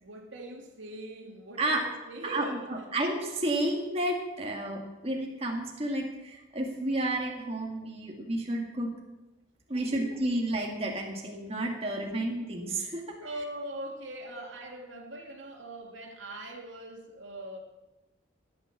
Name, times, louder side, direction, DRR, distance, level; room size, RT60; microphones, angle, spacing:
voice 1, 0.0-2.9 9.7-10.2 13.2-17.6, right 1 dB, 75° right, 1 dB, 2.5 m, -42 dB
voice 2, 2.7-8.9 9.7-13.0, right 1 dB, 30° right, 0 dB, 1.9 m, -31 dB
15.0 x 9.5 x 7.3 m, 1.1 s
head